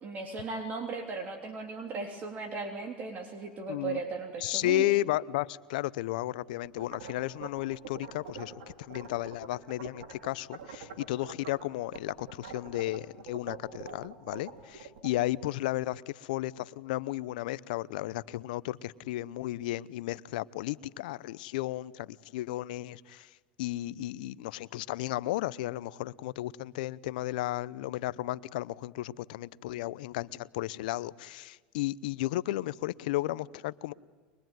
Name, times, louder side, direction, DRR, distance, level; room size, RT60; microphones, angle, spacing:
voice 1, 0.0-4.9, right 4 dB, 35° right, 3.4 m, -37 dB
voice 2, 3.7-4.0 4.4-8.5 8.8-23.3 23.6-33.9, left 16 dB, 75° left, 0.7 m, -33 dB
sound 1, 6.6-10.3 10.5-11.6 11.9-15.3, right 6 dB, 70° right, 4.7 m, -44 dB
24.0 x 22.0 x 9.3 m
hypercardioid pair, 105°, 5 cm